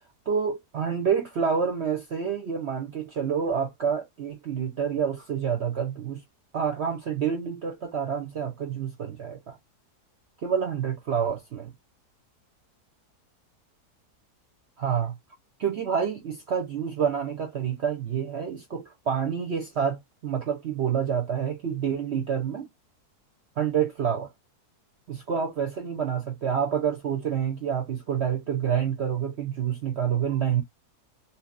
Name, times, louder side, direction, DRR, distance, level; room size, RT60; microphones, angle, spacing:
voice 1, 0.3-6.2 6.5-9.6 10.4-11.7 14.8-15.1 15.6-22.7 23.6-24.3 25.1-30.6, right 7 dB, 55° right, 0.8 m, -28 dB
2.8 x 2.7 x 2.5 m
omnidirectional pair, 1.7 m